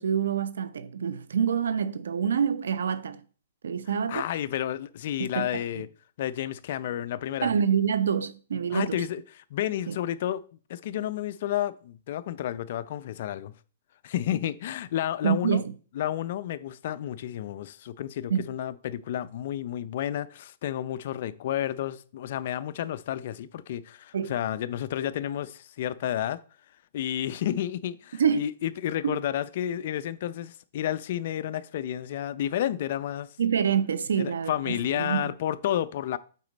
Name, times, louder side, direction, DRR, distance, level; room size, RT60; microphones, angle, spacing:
voice 1, 0.0-3.2 3.6-4.2 5.2-5.6 7.4-9.0 9.9-10.0 15.2-15.7 18.3-18.4 24.1-24.3 28.2-28.4 29.0-29.2 33.4-35.3, right 7 dB, 85° right, 0.6 m, -26 dB
voice 2, 4.1-5.9 6.2-7.5 8.7-10.4 10.7-13.5 14.0-15.6 15.9-26.4 26.9-33.3 34.2-36.2, left 11 dB, 50° left, 0.4 m, -31 dB
8.4 x 4.1 x 4.0 m
hypercardioid pair, 155°, 0 cm